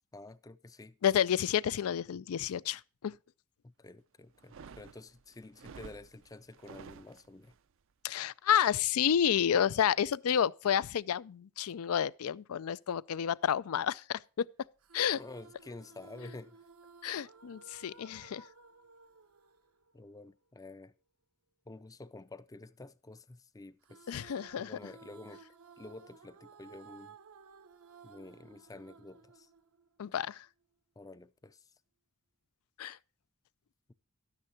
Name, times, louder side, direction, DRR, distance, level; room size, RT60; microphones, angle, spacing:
voice 1, 0.1-1.0 3.6-7.5 15.2-16.6 19.9-20.9 21.7-24.1 24.6-25.4 25.8-27.2 28.0-29.5 31.0-31.6, left 2 dB, 15° left, 0.4 m, -50 dB
voice 2, 1.0-3.1 8.0-14.5 14.9-15.2 17.0-18.4 24.1-24.7 30.0-30.4 32.8-33.0, left 9 dB, 75° left, 0.4 m, -30 dB
sound 1, 4.4-7.6, right 5 dB, 60° right, 0.4 m, -52 dB
sound 2, 14.8-20.3 23.8-30.2, right 4 dB, 85° right, 1.0 m, -56 dB
12.5 x 10.0 x 2.7 m
head